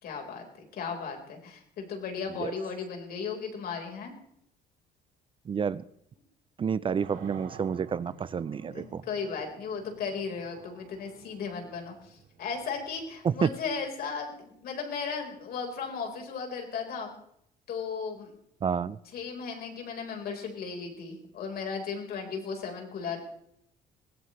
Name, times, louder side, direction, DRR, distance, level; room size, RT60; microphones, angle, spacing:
voice 1, 0.0-4.1 8.6-17.1 17.7-18.3 19.1-23.2, left 5 dB, 65° left, 2 dB, 4.4 m, -36 dB
voice 2, 5.5-5.8 6.6-9.0 13.2-13.5 18.6-19.0, right 6 dB, 30° right, 18 dB, 0.5 m, -29 dB
sound 1, 7.0-13.9, right 6 dB, 65° right, 2.9 m, -51 dB
21.5 x 17.0 x 3.2 m, 0.72 s
cardioid pair, 110°, 17 cm